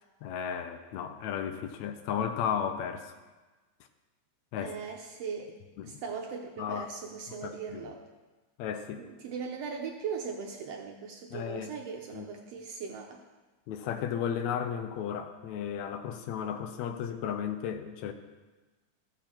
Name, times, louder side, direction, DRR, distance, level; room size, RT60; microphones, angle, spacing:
voice 1, 0.2-3.2 4.5-4.8 5.8-6.0 6.6-6.9 7.4-7.9 8.6-9.0 11.3-11.7 12.1-12.3 13.7-18.1, left 8 dB, 75° left, 7 dB, 1.9 m, -34 dB
voice 2, 4.6-5.5 5.8-8.0 9.0-13.2, right 6 dB, 70° right, 1 dB, 1.6 m, -39 dB
14.0 x 7.1 x 4.4 m, 1.2 s
omnidirectional pair, 3.5 m